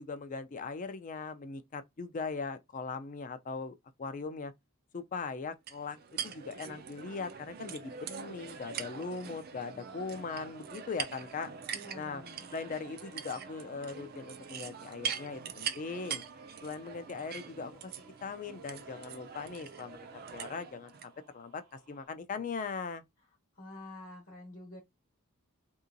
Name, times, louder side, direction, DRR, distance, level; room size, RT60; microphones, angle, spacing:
voice 1, 0.0-4.5 4.9-6.0 6.2-11.5 11.9-12.2 12.5-16.2 16.6-17.9 18.2-20.0 20.3-23.0, left 4 dB, 35° left, 0.3 m, -40 dB
sound 1, 5.7-21.1, right 7 dB, 45° right, 0.4 m, -43 dB
sound 2, 8.5-22.1, right 4 dB, 80° right, 0.8 m, -60 dB
voice 2, 11.7-12.5 23.6-24.8, left 1 dB, 55° left, 1.0 m, -48 dB
2.8 x 2.8 x 2.5 m
head